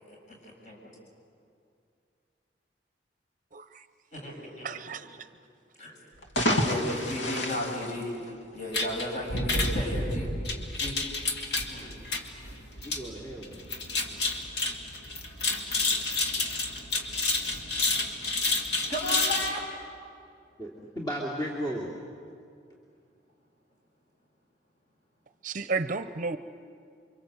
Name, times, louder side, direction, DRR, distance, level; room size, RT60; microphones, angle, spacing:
voice 1, 0.1-0.8 4.1-4.8 5.8-6.0 6.6-8.2 8.5-10.4 10.8-11.0 11.7-11.9 15.7-15.9 18.9-19.6, left 1 dB, 40° left, -1 dB, 7.5 m, -34 dB
voice 2, 3.5-3.8 4.6-5.2 25.4-26.4, right 4 dB, 45° right, 11 dB, 0.8 m, -32 dB
sound 1, 6.1-8.7, left 1 dB, 85° left, 2.0 m, -29 dB
sound 2, 8.7-19.5, left 2 dB, 65° left, 2.4 m, -30 dB
voice 3, 12.8-13.8 20.6-21.9, equal, 25° left, -4 dB, 2.9 m, -35 dB
29.0 x 24.5 x 8.0 m, 2.4 s
head